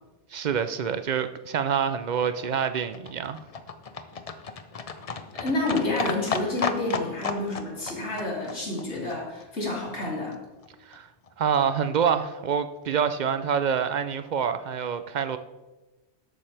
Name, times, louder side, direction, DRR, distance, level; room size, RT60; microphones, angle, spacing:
voice 1, 0.3-3.4 10.9-11.1 11.4-15.4, right 7 dB, 55° right, 0.6 m, -26 dB
Livestock farm animals working animals, 1.8-10.1 10.3-10.4 10.6-10.7 10.9-11.0 11.2-11.3 11.5-11.6 11.9-12.0 12.2-12.3 12.5-12.6, left 5 dB, 40° left, 0.6 m, -35 dB
voice 2, 5.3-10.4, left 2 dB, 90° left, 3.1 m, -29 dB
11.5 x 8.6 x 3.4 m
omnidirectional pair, 1.1 m